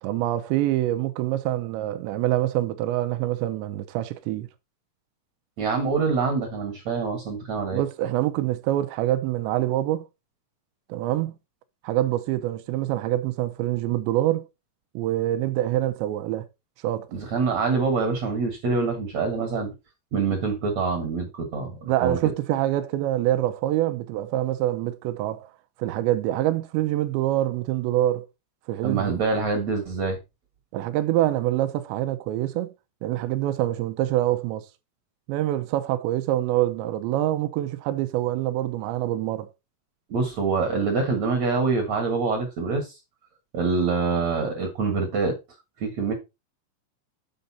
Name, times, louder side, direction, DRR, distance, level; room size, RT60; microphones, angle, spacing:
voice 1, 0.0-4.5 7.7-10.1 10.9-11.3 11.8-14.5 14.9-16.5 16.8-17.1 21.9-25.5 25.8-28.3 28.7-29.2 30.7-32.7 33.0-34.7 35.3-39.5, right 14 dB, 90° right, 3.0 m, -25 dB
voice 2, 5.6-7.8 17.1-19.7 20.1-21.7 22.0-22.2 28.8-30.2 40.1-43.0 43.5-45.4 45.8-46.1, right 4 dB, 55° right, 2.0 m, -25 dB
7.8 x 5.4 x 4.1 m
omnidirectional pair, 5.0 m